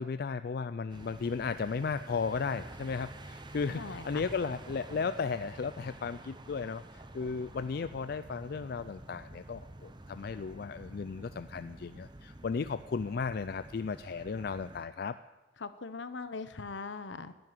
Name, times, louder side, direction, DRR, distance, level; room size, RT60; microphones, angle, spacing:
voice 1, 0.0-15.2, left 5 dB, 55° left, 12 dB, 0.4 m, -35 dB
sound 1, 0.9-14.9, right 1 dB, 25° right, 0.8 m, -49 dB
voice 2, 3.7-4.2 15.6-17.3, left 4 dB, 75° left, 12 dB, 0.9 m, -40 dB
11.0 x 10.5 x 9.4 m, 1.1 s
head